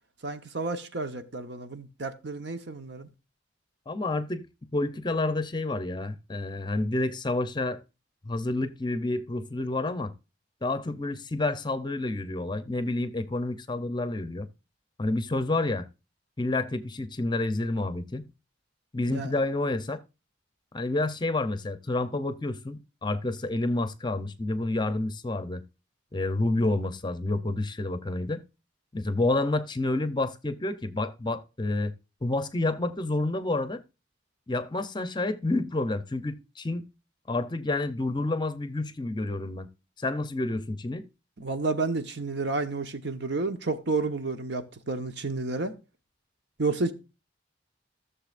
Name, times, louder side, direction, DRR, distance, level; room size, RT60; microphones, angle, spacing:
voice 1, 0.2-3.1 19.1-19.3 41.4-45.7 46.6-46.9, right 3 dB, 60° right, 1.1 m, -31 dB
voice 2, 3.9-4.5 4.7-7.8 8.2-10.1 10.6-14.5 15.0-15.9 16.4-18.2 18.9-20.0 20.7-25.6 26.1-28.4 28.9-31.9 32.2-33.8 34.5-36.8 37.3-39.7 40.0-41.1, left 2 dB, 25° left, 0.7 m, -29 dB
15.0 x 6.9 x 2.5 m
head